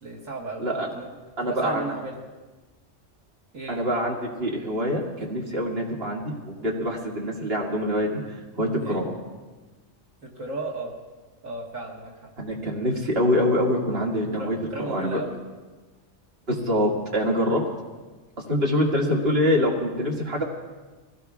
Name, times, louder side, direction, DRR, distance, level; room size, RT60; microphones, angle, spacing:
voice 1, 0.0-0.7 0.9-1.1 1.4-2.3 3.5-3.9 8.8-9.0 10.2-10.9 11.4-12.3 14.3-15.4 17.5-17.7, right 3 dB, 85° right, -2 dB, 2.0 m, -35 dB
voice 2, 1.4-1.8 3.7-9.1 12.4-14.6 14.9-15.2 16.5-17.6 18.5-20.4, equal, 50° right, -3 dB, 2.4 m, -25 dB
22.5 x 17.5 x 2.4 m, 1.3 s
omnidirectional pair, 1.3 m